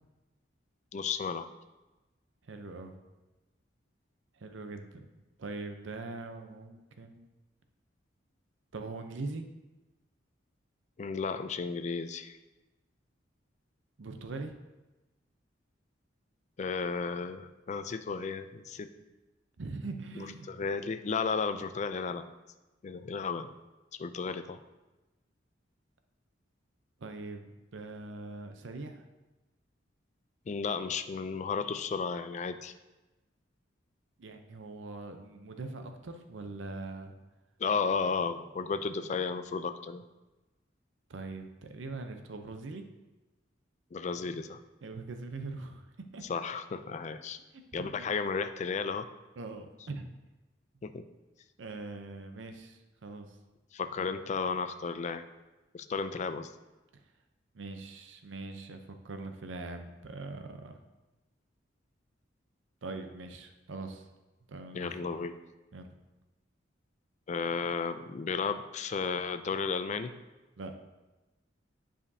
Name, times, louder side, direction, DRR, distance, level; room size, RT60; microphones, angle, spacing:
voice 1, 0.9-1.5 11.0-12.4 16.6-18.9 20.2-22.3 22.8-23.5 23.9-24.6 30.5-32.7 37.6-40.0 43.9-44.6 46.3-47.4 47.7-49.1 50.8-51.1 53.7-55.2 55.7-56.5 64.7-65.3 67.3-70.1, left 5 dB, 40° left, 10 dB, 0.4 m, -33 dB
voice 2, 2.5-3.0 4.4-7.3 8.7-9.4 14.0-14.5 19.6-20.5 27.0-29.0 34.2-37.1 41.1-42.8 44.8-45.9 46.1-46.2 47.5-48.1 49.4-50.1 51.6-53.3 54.0-54.1 57.5-60.8 62.8-64.1 64.5-65.0 65.7-65.9 70.6-70.8, right 3 dB, 80° right, 6 dB, 0.6 m, -42 dB
9.7 x 5.0 x 2.7 m, 1.1 s
head